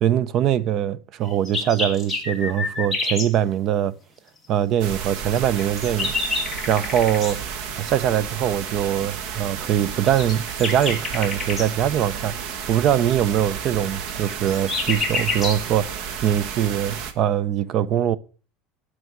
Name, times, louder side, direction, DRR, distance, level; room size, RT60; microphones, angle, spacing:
voice 1, 0.0-3.9 4.5-6.1 6.7-7.4 7.8-12.3 12.7-18.2, right 10 dB, 35° right, 0.6 m, -22 dB
sound 1, 1.2-3.3 5.3-7.4 10.0-11.7 14.1-15.6, left 3 dB, ahead, 2.4 m, -28 dB
sound 2, 4.8-17.1, right 7 dB, 55° right, 1.6 m, -32 dB
12.5 x 5.8 x 9.3 m
cardioid pair, 175°, 0 cm